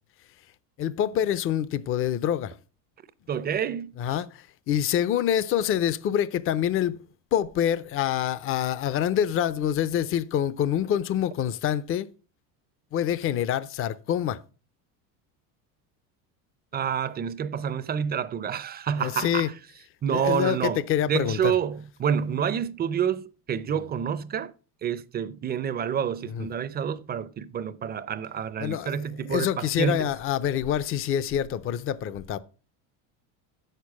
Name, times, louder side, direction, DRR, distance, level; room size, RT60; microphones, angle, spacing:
voice 1, 0.8-2.5 4.0-7.0 7.3-12.1 12.9-14.4 19.0-19.5 20.1-21.5 26.3-26.5 28.6-29.0 29.3-32.4, left 10 dB, 30° left, 0.5 m, -26 dB
voice 2, 3.3-3.9 16.7-19.5 20.0-20.8 21.1-24.5 24.8-30.1, right 8 dB, 20° right, 0.5 m, -28 dB
7.7 x 6.7 x 6.0 m
supercardioid pair, 110°, 44 cm